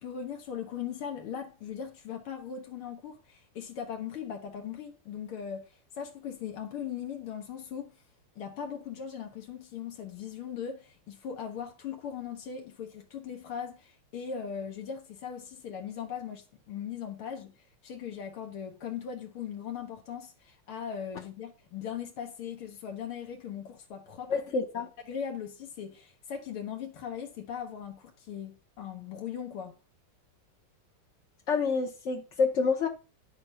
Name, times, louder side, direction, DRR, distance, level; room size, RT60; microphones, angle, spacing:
voice 1, 0.0-7.9 8.4-17.5 17.8-24.4 25.1-29.8, left 8 dB, 85° left, 2.1 m, -39 dB
voice 2, 24.3-24.9 31.5-32.9, left 4 dB, 55° left, 0.8 m, -28 dB
10.5 x 4.9 x 5.5 m
omnidirectional pair, 2.3 m